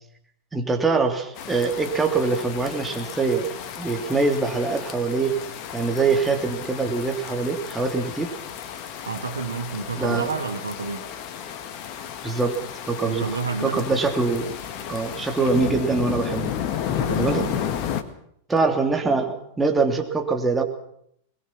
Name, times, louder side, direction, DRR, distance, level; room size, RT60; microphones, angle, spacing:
voice 1, 0.5-3.5 3.8-5.4 5.7-8.3 10.0-10.3 12.2-13.3 13.6-14.5 14.9-16.5 17.2-17.4 18.5-20.6, right 4 dB, 10° right, 3 dB, 3.2 m, -23 dB
sound 1, 1.4-18.0, left 9 dB, 40° left, 1.7 m, -33 dB
voice 2, 9.0-11.0 13.1-13.8 17.0-17.5, right 4 dB, 75° right, 8 dB, 1.6 m, -30 dB
21.5 x 21.0 x 6.1 m, 0.70 s
figure-of-eight pair, 90°, 0 cm